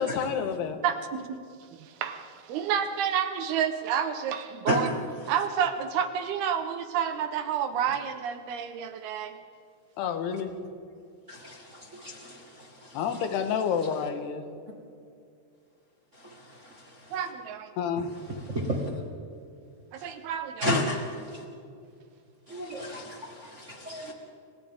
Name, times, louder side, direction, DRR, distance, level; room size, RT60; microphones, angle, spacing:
voice 1, 0.0-0.8 10.0-10.6 12.9-14.5 17.8-18.4 20.6-20.9, left 7 dB, 90° left, 7 dB, 3.4 m, -29 dB
voice 2, 0.8-1.4 1.8-4.9 5.3-9.4 17.1-17.7 19.9-20.8, right 8 dB, 80° right, 8 dB, 3.1 m, -30 dB
voice 3, 11.3-13.0 16.2-17.2 18.5-18.9 20.0-20.1 20.6-21.0 21.3-21.4 22.5-24.1, equal, 35° right, -1 dB, 1.2 m, -33 dB
29.5 x 25.0 x 3.7 m, 2.4 s
omnidirectional pair, 4.5 m